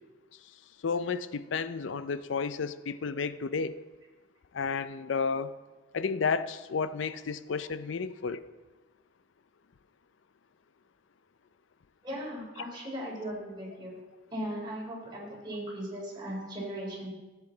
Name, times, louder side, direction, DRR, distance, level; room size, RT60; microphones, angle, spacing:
voice 1, 0.8-3.8 4.5-5.5 5.9-8.4, left 5 dB, 75° left, 14 dB, 0.5 m, -32 dB
voice 2, 12.0-13.9 14.3-17.1, equal, 25° right, -4 dB, 3.6 m, -38 dB
13.5 x 8.1 x 3.9 m, 1.2 s
head